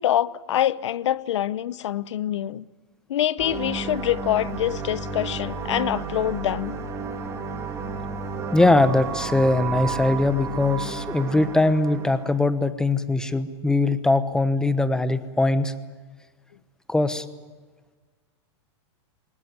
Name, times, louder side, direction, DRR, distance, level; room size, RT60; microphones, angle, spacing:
voice 1, 0.0-2.7 3.1-6.8, left 12 dB, 85° left, 0.8 m, -25 dB
sound 1, 3.4-12.4, right 5 dB, 20° right, 2.9 m, -32 dB
voice 2, 8.5-15.7 16.9-17.2, left 2 dB, 5° left, 1.0 m, -21 dB
21.5 x 19.5 x 9.5 m
supercardioid pair, 150°, 15 cm